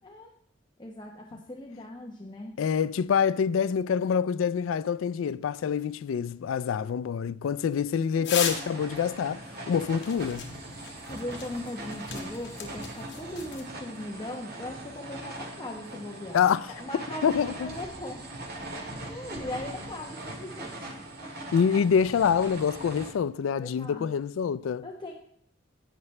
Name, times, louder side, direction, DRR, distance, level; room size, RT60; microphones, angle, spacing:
voice 1, 0.8-2.6 6.7-6.9 8.2-8.3 11.1-18.3 18.6-20.9 21.2-21.5 23.6-24.1 24.8-25.1, left 1 dB, 25° left, 1.0 m, -39 dB
voice 2, 2.6-10.5 16.3-16.7 17.2-17.7 21.5-24.9, left 7 dB, 80° left, 0.3 m, -26 dB
sound 1, 8.2-8.8 9.9-13.6, left 7 dB, 60° left, 1.8 m, -36 dB
sound 2, 8.3-23.1, right 1 dB, 55° right, 1.9 m, -41 dB
17.5 x 5.9 x 3.2 m
head